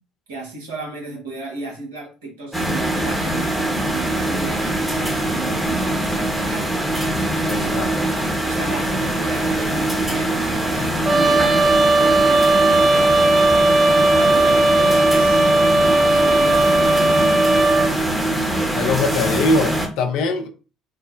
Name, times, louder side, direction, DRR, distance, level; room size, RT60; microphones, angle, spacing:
voice 1, 0.3-6.8 7.3-7.8 8.4-11.6 11.9-13.9 14.1-17.6, right 3 dB, 80° right, 1.1 m, -34 dB
sound 1, 2.5-19.9, right 1 dB, 5° right, 0.9 m, -22 dB
voice 2, 7.5-7.9 18.7-20.5, left 3 dB, 65° left, 0.5 m, -22 dB
Trumpet, 11.1-17.9, right 2 dB, 25° right, 0.6 m, -16 dB
3.1 x 2.1 x 2.4 m
hypercardioid pair, 60°, 0 cm